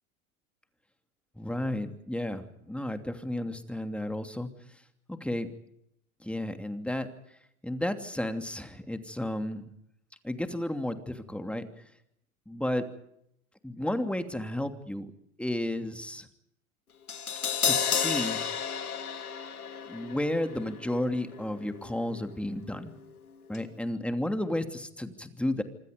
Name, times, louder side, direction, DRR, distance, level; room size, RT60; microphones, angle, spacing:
voice 1, 1.4-4.5 5.1-5.5 6.2-7.1 7.6-9.7 10.2-11.7 12.5-12.9 13.6-15.1 15.4-16.3 17.6-18.4 19.9-22.9 23.5-25.6, left 1 dB, 5° left, 7 dB, 2.8 m, -32 dB
Crash cymbal, 17.1-23.2 23.5-23.6, left 7 dB, 85° left, 2.3 m, -33 dB
26.5 x 26.0 x 5.3 m, 0.77 s
hypercardioid pair, 100°, 43 cm